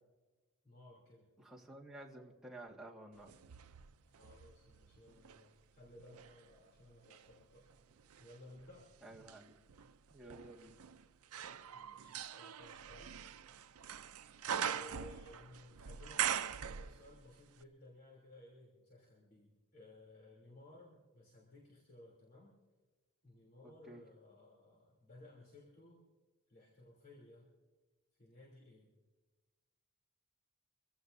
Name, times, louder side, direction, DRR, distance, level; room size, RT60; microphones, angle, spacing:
voice 1, 0.6-1.3 4.1-7.7 8.2-9.0 11.7-13.2 14.0-14.1 14.6-22.6 23.2-26.0 26.5-27.5 28.2-28.9, left 1 dB, 45° left, -4 dB, 3.2 m, -59 dB
voice 2, 1.4-3.3 9.0-9.6 10.1-10.8 23.9-24.0, right 1 dB, 5° right, -4 dB, 1.8 m, -52 dB
sound 1, 3.2-5.4 6.0-17.3 17.6-17.7, right 8 dB, 85° right, 0.6 m, -43 dB
24.5 x 16.0 x 2.7 m, 1.2 s
head